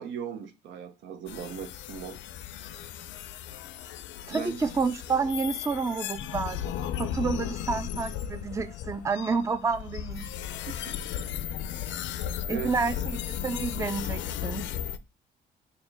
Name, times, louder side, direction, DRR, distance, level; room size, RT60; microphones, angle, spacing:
voice 1, 0.0-2.2 4.3-4.6 10.7-11.0 12.5-12.7, right 8 dB, 85° right, 0.7 m, -38 dB
sound 1, 1.3-15.0, left 10 dB, 80° left, 0.4 m, -35 dB
voice 2, 4.3-6.6 7.0-10.3 12.5-14.7, right 4 dB, 15° right, 0.4 m, -29 dB
4.4 x 2.2 x 3.4 m
cardioid pair, 80°, 19 cm